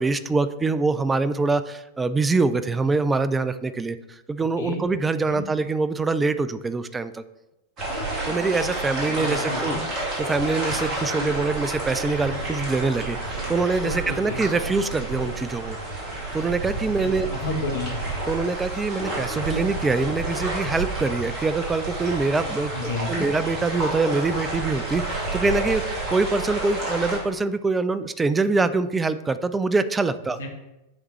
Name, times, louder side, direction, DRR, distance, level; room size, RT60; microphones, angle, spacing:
voice 1, 0.0-7.2 8.3-15.8 16.3-17.3 18.3-30.4, right 3 dB, 15° right, 13 dB, 0.3 m, -24 dB
voice 2, 4.4-4.9 5.2-5.4 9.1-9.8 13.8-14.5 17.0-18.0 22.7-23.3 30.3-30.5, left 3 dB, 65° left, 1 dB, 1.1 m, -32 dB
sound 1, 7.8-27.2, right 2 dB, 30° right, 2.2 m, -30 dB
9.7 x 3.6 x 3.1 m, 0.96 s
figure-of-eight pair, 90°, 0 cm